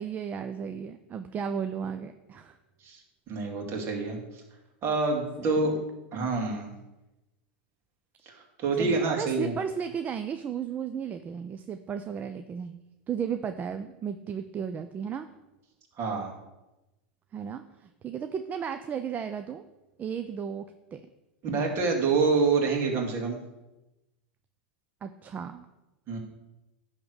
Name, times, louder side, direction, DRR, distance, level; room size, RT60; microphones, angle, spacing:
voice 1, 0.0-2.6 5.4-5.5 8.8-12.8 13.1-15.3 17.3-19.7 20.0-20.6 20.9-21.0 25.0-25.7, right 7 dB, 25° right, 8 dB, 0.5 m, -34 dB
voice 2, 3.3-4.2 4.8-5.7 6.1-6.7 8.3-9.6 16.0-16.3 21.4-23.4 26.1-26.2, right 4 dB, 40° right, 1 dB, 2.2 m, -27 dB
10.0 x 3.6 x 6.4 m, 1.0 s
supercardioid pair, 115°, 6 cm